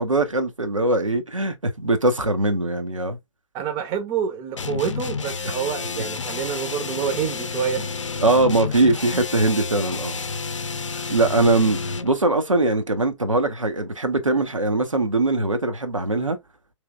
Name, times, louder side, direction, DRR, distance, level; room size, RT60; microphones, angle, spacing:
voice 1, 0.0-3.2 8.2-10.2 10.9-16.4, right 2 dB, 85° right, 0.8 m, -21 dB
voice 2, 3.5-8.0, right 7 dB, 20° right, 0.6 m, -27 dB
sound 1, 4.6-12.2, left 4 dB, 70° left, 0.6 m, -30 dB
3.2 x 3.1 x 2.2 m
figure-of-eight pair, 125°, 16 cm